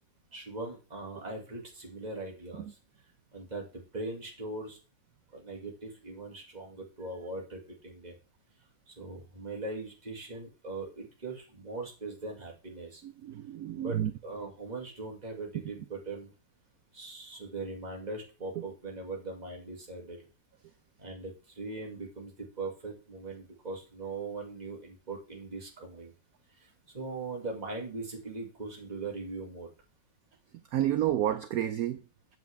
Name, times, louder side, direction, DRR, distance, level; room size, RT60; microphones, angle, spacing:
voice 1, 0.3-2.7 3.3-4.8 5.3-8.2 8.9-13.0 13.8-14.0 14.2-16.3 16.9-20.3 21.0-26.1 26.6-26.7 26.9-29.7, right 3 dB, 20° right, 2.0 m, -40 dB
voice 2, 13.0-14.1 18.6-18.7 30.7-32.0, right 12 dB, 85° right, 0.8 m, -30 dB
7.7 x 7.6 x 3.4 m
omnidirectional pair, 2.1 m